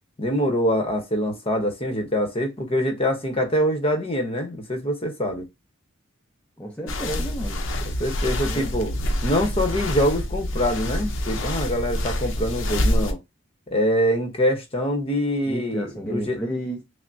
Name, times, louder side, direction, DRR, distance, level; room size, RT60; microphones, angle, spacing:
voice 1, 0.2-5.5 8.0-8.9 9.2-13.2 13.7-16.4, equal, 30° left, 0.9 m, -24 dB
voice 2, 6.6-7.6 8.5-8.7 15.5-16.8, right 1 dB, 5° left, 0.6 m, -31 dB
sound 1, 6.9-13.1, left 1 dB, 70° left, 0.7 m, -26 dB
5.7 x 2.1 x 2.6 m
head